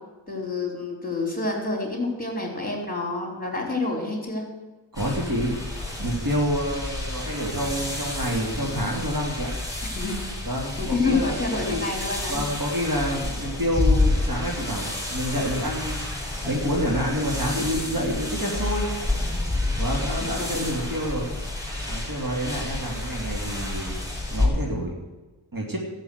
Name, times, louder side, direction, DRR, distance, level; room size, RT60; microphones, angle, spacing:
voice 1, 0.3-4.4 9.9-10.1 10.8-12.4 20.5-20.6, left 3 dB, 20° left, 0 dB, 4.3 m, -28 dB
sound 1, 4.9-24.5, left 2 dB, 10° right, 4.4 m, -29 dB
voice 2, 4.9-5.6 6.0-9.5 10.5-11.9 12.3-16.0 16.4-18.9 19.8-21.3 21.9-24.0 24.3-24.9 25.5-25.8, equal, 50° right, -1 dB, 3.0 m, -28 dB
13.5 x 7.5 x 8.1 m, 1.2 s
wide cardioid pair, 40°, 43 cm